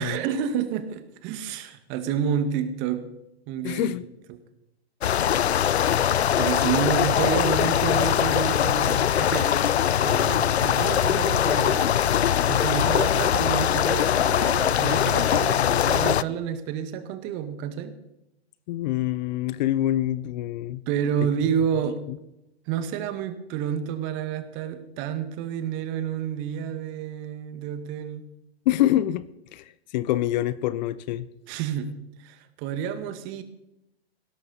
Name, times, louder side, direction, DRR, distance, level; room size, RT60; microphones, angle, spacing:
voice 1, 0.0-3.1 3.5-3.9 4.3-4.4 6.4-9.6 10.0-12.0 12.3-18.0 20.9-22.0 22.7-28.2 31.5-31.9 32.2-33.4, right 8 dB, 40° right, 1.9 m, -29 dB
voice 2, 3.6-4.0 5.6-6.1 18.7-20.8 21.2-21.3 22.1-22.2 28.7-29.2 29.5-29.6 29.9-31.3, left 14 dB, 45° left, 0.7 m, -26 dB
sound 1, 5.0-16.2, left 10 dB, 80° left, 0.6 m, -22 dB
17.0 x 13.0 x 4.2 m
figure-of-eight pair, 110°, 32 cm